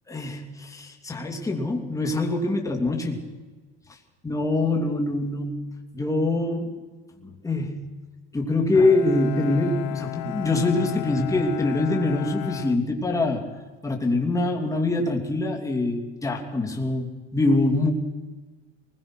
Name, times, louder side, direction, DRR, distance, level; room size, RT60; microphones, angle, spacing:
voice 1, 0.1-3.2 4.2-5.7 5.9-6.7 7.2-7.9 8.3-13.4 13.8-17.9, left 2 dB, 10° left, 1 dB, 2.9 m, -24 dB
Bowed string instrument, 8.7-13.6, left 17 dB, 65° left, 1.0 m, -35 dB
25.0 x 21.0 x 6.2 m, 1.3 s
cardioid pair, 150°, 32 cm